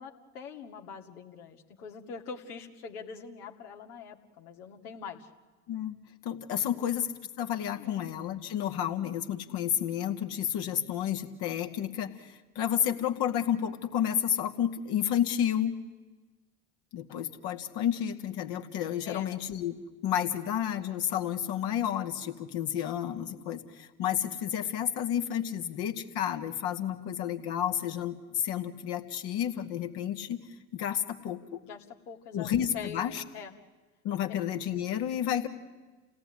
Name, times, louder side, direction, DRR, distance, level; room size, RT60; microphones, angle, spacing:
voice 1, 0.0-5.3 6.8-6.9 7.7-8.1 19.1-19.4 31.6-32.5 32.7-33.5 34.3-34.4, left 6 dB, 75° left, 4 dB, 2.4 m, -44 dB
voice 2, 6.2-7.1 7.4-15.8 16.9-19.7 20.0-30.4 30.7-31.6 32.3-33.2 34.0-35.5, left 10 dB, 60° left, 5 dB, 2.2 m, -31 dB
29.0 x 17.5 x 9.9 m, 1.3 s
hypercardioid pair, 65°, 45 cm